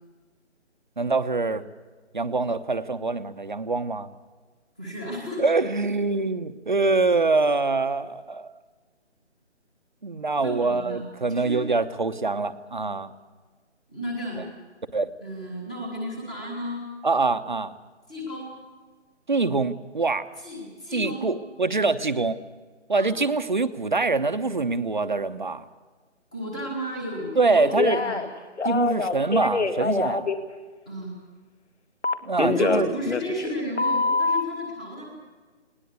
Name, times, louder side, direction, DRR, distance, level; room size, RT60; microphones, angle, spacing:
voice 1, 1.0-1.6 2.1-4.1 5.4-8.5 10.0-13.1 14.9-15.1 17.0-17.7 19.3-20.3 20.9-22.4 22.9-25.6 27.4-28.0 28.6-30.3 32.2-32.9, right 3 dB, 40° right, 11 dB, 1.0 m, -24 dB
voice 2, 4.8-5.5 10.3-11.6 13.9-14.4 15.2-16.9 18.1-18.6 20.4-21.3 22.9-23.1 26.3-28.2 30.8-31.1 32.4-35.0, equal, 5° left, -1 dB, 1.3 m, -33 dB
Telephone, 27.8-28.3 28.6-30.4 32.0-33.5 33.8-34.4, left 4 dB, 70° left, 2.1 m, -24 dB
20.0 x 19.0 x 8.2 m, 1.4 s
hypercardioid pair, 175°, 36 cm